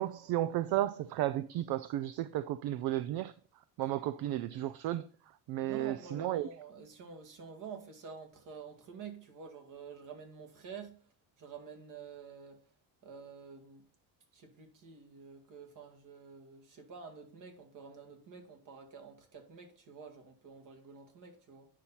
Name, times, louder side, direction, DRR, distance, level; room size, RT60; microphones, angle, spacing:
voice 1, 0.0-3.3 3.8-6.5, right 14 dB, 65° right, 0.6 m, -33 dB
voice 2, 5.6-11.0 11.4-12.6 13.0-13.8 14.3-21.7, right 5 dB, 50° right, 2.2 m, -49 dB
9.9 x 5.6 x 4.3 m
cardioid pair, 135°, 40 cm